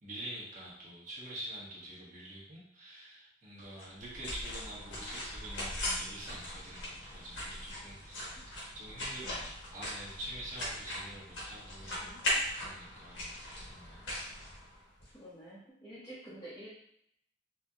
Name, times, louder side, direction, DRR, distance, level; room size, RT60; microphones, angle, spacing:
voice 1, 0.0-13.4 13.7-14.0, right 1 dB, 40° right, -7 dB, 1.2 m, -46 dB
sound 1, 3.8-15.1, left 1 dB, 70° left, 1.3 m, -39 dB
voice 2, 15.1-16.7, right 1 dB, 15° left, -11 dB, 0.7 m, -48 dB
4.3 x 2.8 x 2.4 m, 0.73 s
head